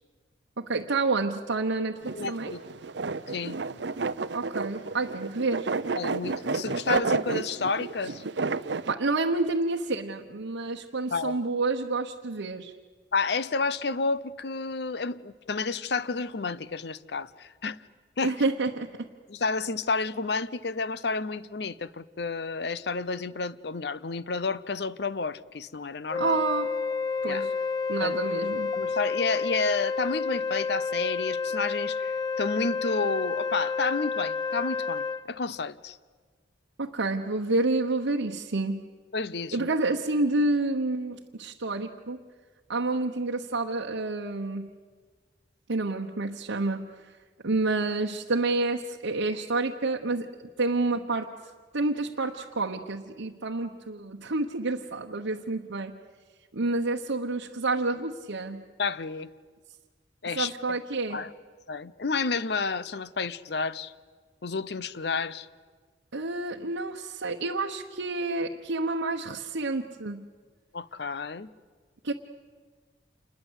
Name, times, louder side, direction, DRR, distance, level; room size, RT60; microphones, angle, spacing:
voice 1, 0.6-2.5 4.3-5.7 8.7-12.7 18.2-19.1 26.2-26.7 27.2-27.5 27.9-28.7 36.8-38.8 39.5-42.2 42.7-44.7 45.7-46.9 47.4-50.3 50.6-51.3 51.7-55.9 56.5-58.6 60.3-61.2 66.1-70.2 72.0-72.1, right 3 dB, 90° right, 1.1 m, -29 dB
sound 1, 2.0-8.9, right 4 dB, 70° right, 0.7 m, -31 dB
voice 2, 2.1-2.6 3.3-3.6 6.0-8.2 11.1-11.4 13.1-17.8 18.2-18.3 19.3-26.4 27.2-27.5 28.0-28.2 28.7-36.0 39.1-39.7 58.8-59.3 60.2-60.8 61.1-61.3 61.7-63.9 64.4-65.5 70.7-71.5, left 4 dB, 60° left, 0.7 m, -30 dB
Wind instrument woodwind instrument, 26.1-35.3, left 4 dB, 20° left, 0.7 m, -30 dB
27.5 x 21.0 x 8.1 m
head